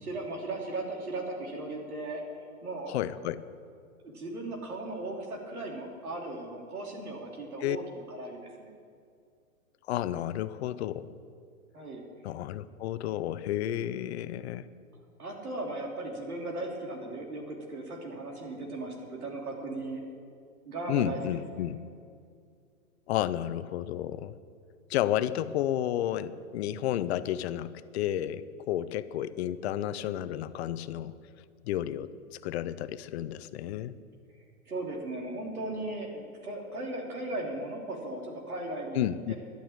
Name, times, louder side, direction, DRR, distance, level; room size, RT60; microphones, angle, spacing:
voice 1, 0.0-2.2 2.6-2.9 4.0-7.8 8.1-8.7 11.7-12.0 15.2-20.0 20.6-21.2 21.6-21.7 34.7-39.3, right 2 dB, 85° right, 0 dB, 3.2 m, -37 dB
voice 2, 2.9-3.5 7.6-7.8 9.9-11.1 12.2-14.7 20.9-21.8 23.1-24.4 24.9-31.2 31.6-33.9 38.9-39.3, left 12 dB, 50° left, 15 dB, 0.7 m, -31 dB
11.5 x 8.9 x 8.7 m, 2.3 s
hypercardioid pair, 120°, 43 cm